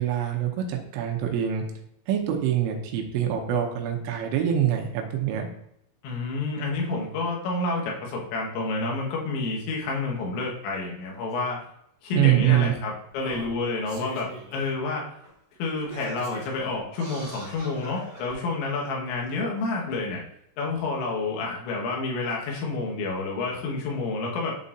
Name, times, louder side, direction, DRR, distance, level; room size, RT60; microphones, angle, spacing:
voice 1, 0.0-1.6 2.1-5.5 12.1-12.7, right 10 dB, 85° right, 2 dB, 3.3 m, -24 dB
voice 2, 6.0-11.6 12.0-15.1 15.6-20.2 20.6-24.6, left 3 dB, 75° left, -2 dB, 3.5 m, -29 dB
Singing, 11.3-11.4 12.4-12.5 13.1-14.7 15.2-15.3 15.7-18.3 19.1-19.2, right 1 dB, 65° right, 1.3 m, -42 dB
11.0 x 4.1 x 2.5 m, 0.76 s
omnidirectional pair, 5.7 m